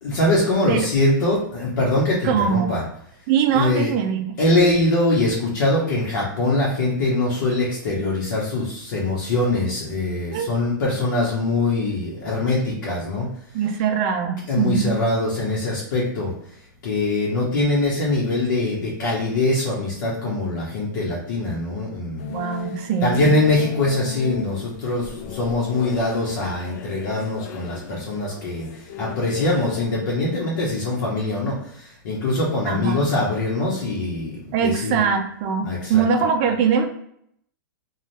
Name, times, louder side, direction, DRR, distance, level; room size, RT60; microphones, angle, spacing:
voice 1, 0.0-2.8 3.5-3.9 4.4-13.3 14.5-16.3 16.8-22.3 23.0-35.0 35.6-36.0, left 2 dB, 65° left, -5 dB, 0.9 m, -23 dB
voice 2, 2.2-2.7 3.3-4.4 10.3-10.5 13.5-15.0 22.3-23.3 32.7-33.2 34.5-36.9, right 7 dB, 40° right, 5 dB, 0.5 m, -22 dB
sound 1, 22.2-29.9, left 8 dB, 50° left, 0.3 m, -36 dB
2.6 x 2.3 x 3.1 m, 0.70 s
hypercardioid pair, 150°, 11 cm